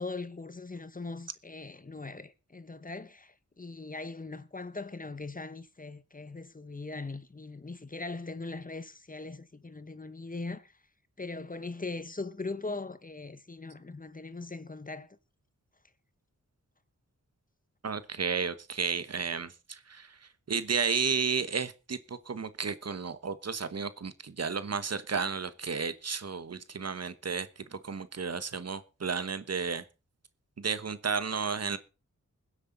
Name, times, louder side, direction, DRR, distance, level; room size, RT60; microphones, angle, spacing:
voice 1, 0.0-10.7 11.2-15.1, left 3 dB, 30° left, 1.1 m, -40 dB
voice 2, 17.8-20.2 20.5-29.8 30.6-31.8, right 5 dB, 55° right, 1.2 m, -32 dB
21.5 x 8.1 x 3.9 m
wide cardioid pair, 70°, 30 cm